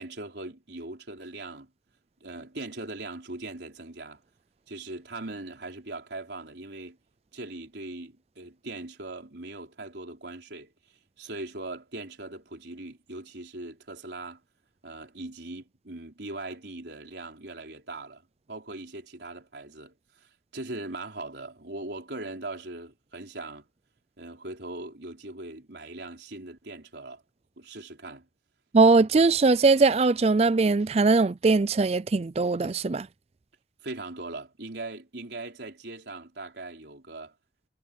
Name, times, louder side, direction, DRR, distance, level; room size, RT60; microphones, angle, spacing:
voice 1, 0.0-1.7 2.2-4.2 4.7-7.0 7.3-10.7 11.2-14.4 14.8-23.7 24.2-27.2 27.6-28.3 33.8-37.3, right 2 dB, 75° right, 3.9 m, -40 dB
voice 2, 28.7-33.1, right 3 dB, 35° right, 0.4 m, -21 dB
head